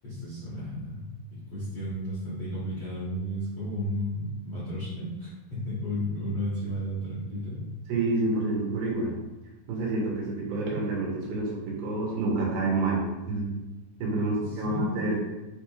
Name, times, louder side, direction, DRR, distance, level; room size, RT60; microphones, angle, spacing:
voice 1, 0.0-1.0 1.3-7.7 14.3-15.2, equal, 65° left, -10 dB, 1.2 m, -33 dB
voice 2, 7.9-9.1 9.7-13.5 14.0-15.2, right 2 dB, 90° right, -3 dB, 2.9 m, -28 dB
6.5 x 3.2 x 2.4 m, 1.0 s
omnidirectional pair, 4.2 m